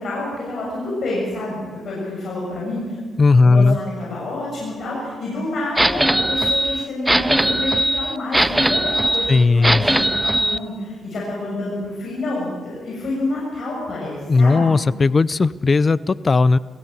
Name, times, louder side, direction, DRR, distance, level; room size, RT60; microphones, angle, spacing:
voice 1, 0.0-3.0 3.4-14.8, left 2 dB, 60° left, -4 dB, 7.2 m, -28 dB
voice 2, 3.2-3.8 9.3-9.9 14.3-16.6, left 3 dB, 35° left, 19 dB, 0.5 m, -16 dB
sound 1, 5.8-10.6, right 1 dB, 10° right, 0.6 m, -19 dB
25.0 x 15.5 x 6.7 m, 1.5 s
cardioid pair, 90°, 0 cm